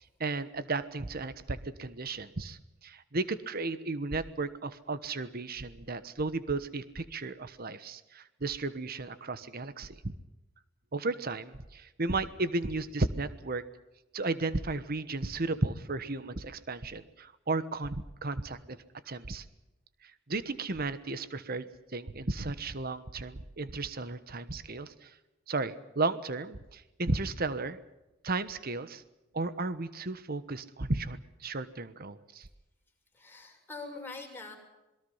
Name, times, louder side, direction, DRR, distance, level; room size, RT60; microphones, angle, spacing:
voice 1, 0.0-10.1 10.9-13.6 14.1-18.8 19.1-19.4 20.0-25.2 25.5-27.8 28.2-29.0 29.3-32.5, right 3 dB, 50° right, 13 dB, 1.2 m, -34 dB
voice 2, 33.1-34.6, left 3 dB, 10° left, 0 dB, 6.1 m, -43 dB
27.0 x 22.0 x 5.7 m, 1.0 s
head